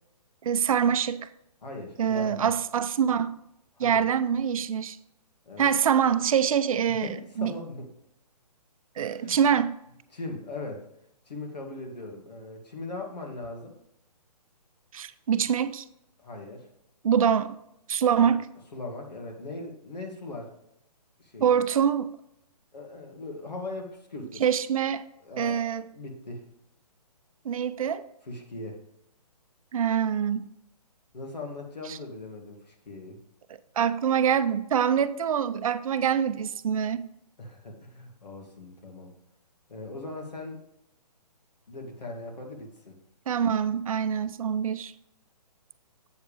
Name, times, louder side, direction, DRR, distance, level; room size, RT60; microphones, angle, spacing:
voice 1, 0.4-1.3 2.0-3.4 3.8-5.0 5.6-7.1 7.4-7.5 9.0-9.7 14.9-15.8 17.0-17.6 17.9-18.5 21.4-22.1 24.4-25.1 25.4-25.9 27.4-28.0 29.7-30.5 31.9-32.0 33.8-37.1 43.3-44.9, right 8 dB, 55° right, 0.6 m, -25 dB
voice 2, 1.6-2.5 3.8-4.0 5.4-5.7 6.9-7.9 9.2-9.4 10.1-10.9 11.3-13.8 16.2-16.7 18.2-18.3 18.7-20.5 21.2-21.6 22.7-24.4 25.2-25.6 25.9-26.5 28.2-28.8 31.1-33.2 37.4-39.2 39.7-40.6 41.7-43.0, left 2 dB, 85° left, 2.4 m, -39 dB
8.1 x 7.2 x 3.4 m
hypercardioid pair, 150°, 21 cm